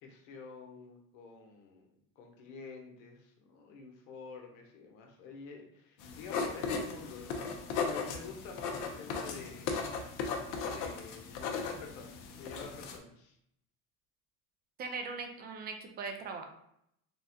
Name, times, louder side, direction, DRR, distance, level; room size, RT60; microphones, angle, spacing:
voice 1, 0.0-1.9 2.2-7.3 7.7-9.7 10.7-13.4, left 4 dB, 85° left, 2 dB, 0.9 m, -48 dB
sound 1, 6.0-13.0, left 5 dB, 55° left, 0.6 m, -37 dB
voice 2, 14.8-16.4, right 4 dB, 25° right, 4 dB, 0.4 m, -40 dB
3.6 x 2.1 x 2.6 m, 0.74 s
supercardioid pair, 130°, 38 cm